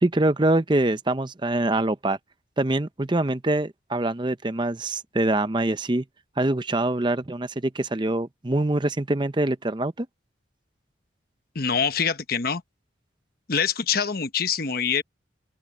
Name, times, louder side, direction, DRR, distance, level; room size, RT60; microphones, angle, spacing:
voice 1, 0.0-2.2 2.6-6.0 6.4-10.1, right 2 dB, 25° right, 0.7 m, -24 dB
voice 2, 11.5-12.6 13.5-15.0, left 6 dB, 50° left, 1.1 m, -25 dB
open air
head